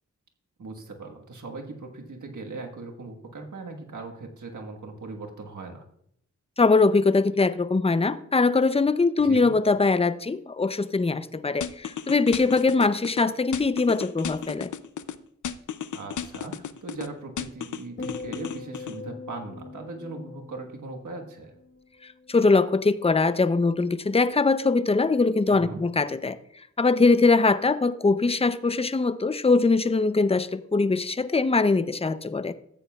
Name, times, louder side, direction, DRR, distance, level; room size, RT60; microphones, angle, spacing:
voice 1, 0.6-5.9 9.2-9.5 15.9-21.5 25.5-25.8, right 3 dB, 80° right, 2 dB, 1.5 m, -39 dB
voice 2, 6.6-14.7 22.3-26.4 26.8-32.5, left 3 dB, 20° left, 14 dB, 0.6 m, -22 dB
sound 1, 11.6-13.2 13.5-15.1 15.4-17.1 17.4-19.0, left 8 dB, 80° left, 0.5 m, -34 dB
sound 2, 18.0-22.4 22.7-23.1, left 4 dB, 40° left, 1.2 m, -42 dB
14.0 x 9.0 x 2.3 m, 0.74 s
cardioid pair, 45°, 30 cm